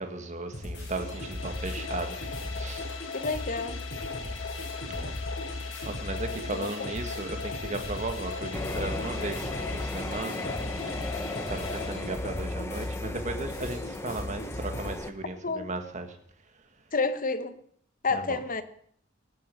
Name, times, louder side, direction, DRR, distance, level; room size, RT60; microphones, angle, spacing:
voice 1, 0.0-2.2 2.5-2.8 4.9-5.1 5.5-11.1 11.5-16.1 18.1-18.4, right 2 dB, 40° right, 1.9 m, -36 dB
sound 1, 0.5-15.0, left 1 dB, 60° left, 7.5 m, -37 dB
sound 2, 0.8-12.7, left 5 dB, 80° left, 2.0 m, -39 dB
voice 2, 3.1-3.8 6.5-6.7 15.4-15.7 16.9-17.5 18.0-18.6, left 4 dB, 45° left, 1.2 m, -29 dB
sound 3, 8.5-15.1, left 1 dB, 15° left, 0.8 m, -37 dB
18.0 x 8.5 x 7.8 m
head